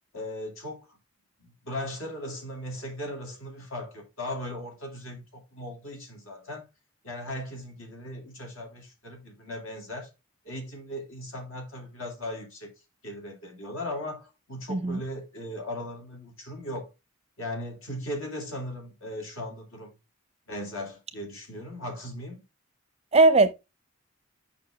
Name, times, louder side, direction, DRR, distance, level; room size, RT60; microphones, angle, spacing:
voice 1, 0.1-1.0 1.4-6.6 7.0-10.1 10.4-12.7 13.0-16.9 17.4-19.9 20.5-22.4, left 1 dB, 70° left, 2.6 m, -38 dB
voice 2, 14.7-15.0 23.1-23.5, right 3 dB, 30° right, 0.5 m, -19 dB
6.6 x 5.4 x 3.4 m
head